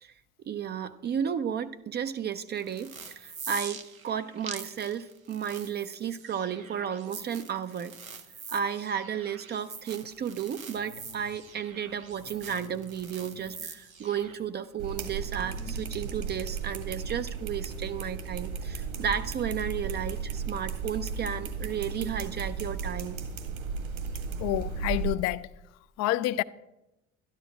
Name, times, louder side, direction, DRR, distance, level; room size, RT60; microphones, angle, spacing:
voice 1, 0.4-7.9 8.5-23.2, right 8 dB, 25° right, 0.5 m, -33 dB
sound 1, 2.6-14.3, right 5 dB, 85° right, 0.8 m, -44 dB
sound 2, 10.0-23.4, left 4 dB, 70° left, 1.7 m, -54 dB
sound 3, 14.8-25.1, right 5 dB, 60° right, 1.9 m, -35 dB
voice 2, 24.4-25.5 26.0-26.4, left 15 dB, 40° left, 0.5 m, -28 dB
12.5 x 10.5 x 4.9 m
figure-of-eight pair, 60°, 40 cm